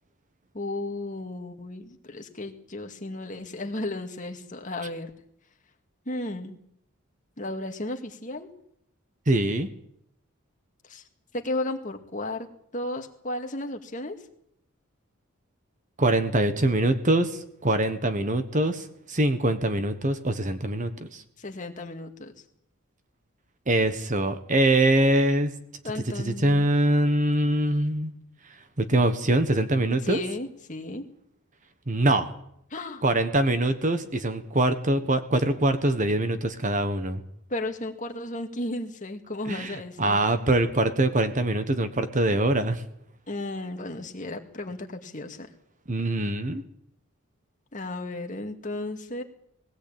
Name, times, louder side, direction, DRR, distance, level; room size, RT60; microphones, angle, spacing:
voice 1, 0.5-5.1 6.1-6.6 7.4-8.5 10.9-11.0 11.3-12.5 12.7-14.2 21.4-22.3 25.8-26.7 30.0-31.0 32.7-33.0 37.5-40.2 43.3-45.5 47.7-49.2, left 2 dB, 35° left, 4 dB, 2.2 m, -34 dB
voice 2, 9.3-9.7 16.0-21.2 23.7-25.5 26.2-28.1 28.8-30.2 31.9-32.3 33.0-37.2 39.5-42.8 45.9-46.6, right 1 dB, 35° right, 10 dB, 1.3 m, -23 dB
20.0 x 16.5 x 8.8 m, 0.72 s
head